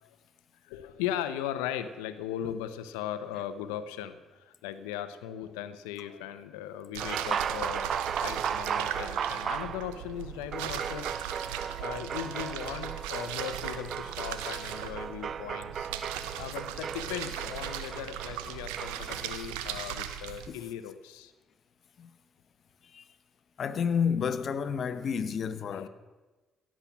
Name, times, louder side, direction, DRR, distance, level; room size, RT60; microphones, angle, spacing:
voice 1, 0.6-11.1 11.8-21.3 25.7-25.9, left 10 dB, 85° left, 0.9 m, -38 dB
sound 1, 6.9-20.5, right 10 dB, 85° right, 0.9 m, -39 dB
sound 2, 7.0-19.3, right 8 dB, 55° right, 0.4 m, -36 dB
voice 2, 23.6-25.9, left 6 dB, 55° left, 1.0 m, -30 dB
16.5 x 7.6 x 7.3 m
hypercardioid pair, 55°, 0 cm